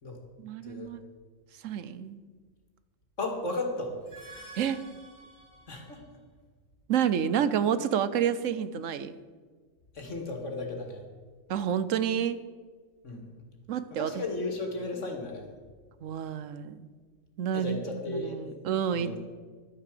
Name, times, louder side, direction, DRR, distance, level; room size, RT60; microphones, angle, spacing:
voice 1, 0.4-1.0 1.6-2.2 4.6-4.9 6.9-9.1 11.5-12.4 13.7-14.2 16.0-16.9 17.4-19.2, right 8 dB, 80° right, 14 dB, 1.1 m, -29 dB
voice 2, 3.2-4.0 5.7-6.0 9.9-11.0 13.0-13.3 13.9-15.4 17.5-18.4 18.9-19.2, left 2 dB, 70° left, 3 dB, 2.3 m, -35 dB
sound 1, 3.9-6.2, right 2 dB, 35° right, 2.3 m, -50 dB
12.0 x 9.5 x 6.7 m, 1.5 s
omnidirectional pair, 1.3 m